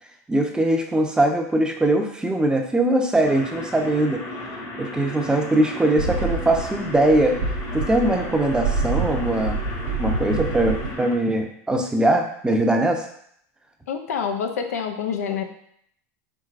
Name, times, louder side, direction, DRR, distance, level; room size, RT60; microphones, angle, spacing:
voice 1, 0.3-4.2 4.8-7.4 7.7-9.6 10.0-13.0, right 1 dB, 10° right, 3 dB, 0.7 m, -21 dB
sound 1, 3.2-11.1, left 1 dB, 60° left, 1.5 m, -35 dB
sound 2, 6.0-10.9, right 4 dB, 90° right, 0.4 m, -27 dB
voice 2, 13.9-15.4, left 7 dB, 90° left, 5 dB, 0.6 m, -27 dB
4.7 x 3.7 x 2.5 m, 0.67 s
hypercardioid pair, 100°, 8 cm